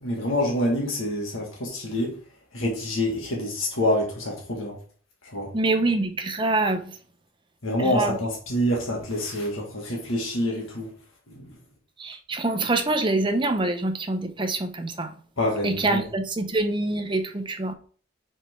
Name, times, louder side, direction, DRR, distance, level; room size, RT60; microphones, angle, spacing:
voice 1, 0.0-2.1 2.5-4.7 5.3-5.5 7.6-10.9 11.3-11.4 15.4-16.0, left 1 dB, 85° left, 1.7 m, -26 dB
voice 2, 5.5-6.8 7.8-8.2 12.0-15.1 15.6-17.7, right 2 dB, 25° right, 0.7 m, -25 dB
5.1 x 4.3 x 4.4 m
head